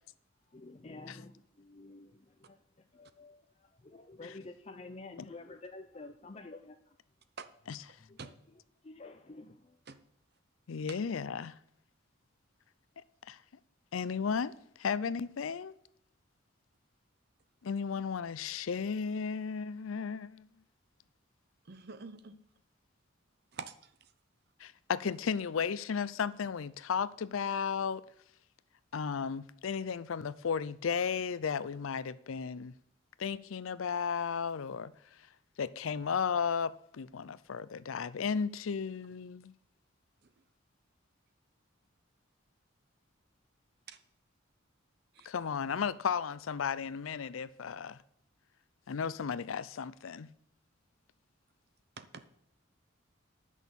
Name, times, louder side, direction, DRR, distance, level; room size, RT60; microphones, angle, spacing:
voice 1, 0.5-7.0 7.7-9.8, left 2 dB, 30° left, 0.5 m, -50 dB
voice 2, 10.7-11.6 13.3-13.4 13.9-15.8 17.6-20.5 24.6-28.0 28.9-32.7 33.2-34.9 35.6-39.5 45.2-48.0 48.9-50.3, left 6 dB, 85° left, 0.5 m, -34 dB
voice 3, 21.7-22.4 23.5-23.7 45.1-45.3 52.0-52.4, right 5 dB, 50° right, 0.7 m, -45 dB
10.0 x 6.3 x 7.0 m
head